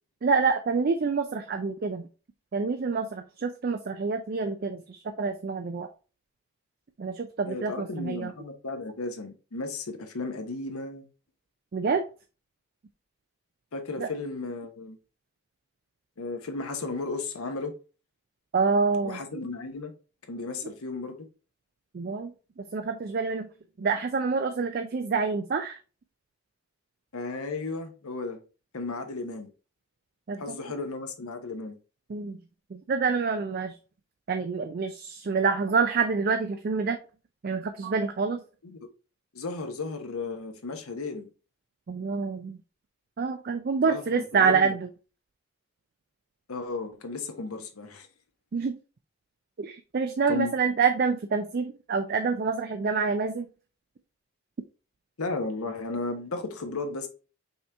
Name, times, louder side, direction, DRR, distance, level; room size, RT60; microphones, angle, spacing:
voice 1, 0.2-2.0 2.5-5.9 7.0-8.3 11.7-12.0 14.0-14.1 18.5-19.2 21.9-23.5 23.8-25.8 30.3-30.6 32.1-32.4 32.7-33.8 34.3-37.0 37.4-38.4 41.9-42.6 43.2-44.9 48.5-48.8 49.6-53.5, right 5 dB, 45° right, 0.4 m, -27 dB
voice 2, 7.5-11.1 13.7-15.0 16.2-17.7 19.0-19.9 20.3-21.3 27.1-28.4 28.7-29.5 30.4-31.8 38.6-38.9 39.3-41.3 43.8-44.7 46.5-48.1 50.3-50.5 55.2-57.1, left 3 dB, 90° left, 0.9 m, -34 dB
5.5 x 2.8 x 3.4 m
head